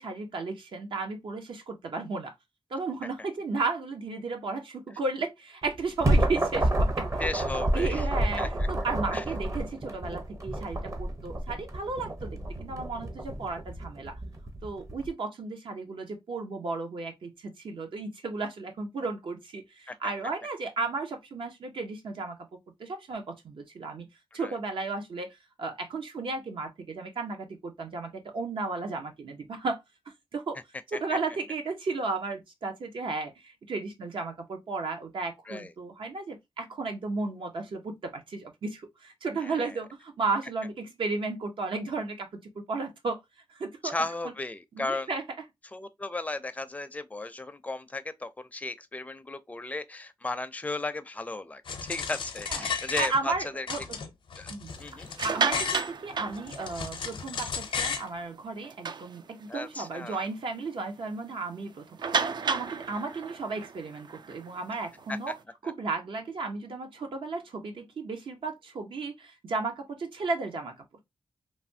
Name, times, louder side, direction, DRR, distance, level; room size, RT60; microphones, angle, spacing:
voice 1, 0.0-2.3 2.7-7.2 7.7-14.1 14.6-22.4 22.8-24.1 24.3-29.8 30.3-30.6 30.9-43.2 43.5-43.9 44.7-45.2 52.5-52.7 53.0-54.0 54.5-54.7 55.2-62.0 62.4-65.3 65.6-70.7, right 3 dB, 75° right, 0.9 m, -34 dB
sound 1, 5.6-15.1, right 1 dB, 35° right, 0.7 m, -29 dB
voice 2, 7.2-8.0 8.4-8.7 9.1-9.2 19.9-20.0 24.4-24.5 30.9-31.2 35.5-35.7 39.4-39.8 43.8-45.1 45.7-53.7 54.4-54.5 54.8-55.1 59.5-60.3 65.1-65.3, left 2 dB, 15° left, 0.4 m, -35 dB
sound 2, 51.7-53.4 53.7-55.9 56.3-58.1, left 5 dB, 75° left, 0.6 m, -34 dB
sound 3, 55.0-57.1 57.6-57.8 58.1-58.2 58.6-59.7 60.1-60.3 60.6-60.7 62.0-65.4, right 5 dB, 60° right, 0.3 m, -32 dB
3.2 x 2.3 x 2.6 m
cardioid pair, 70°, 9 cm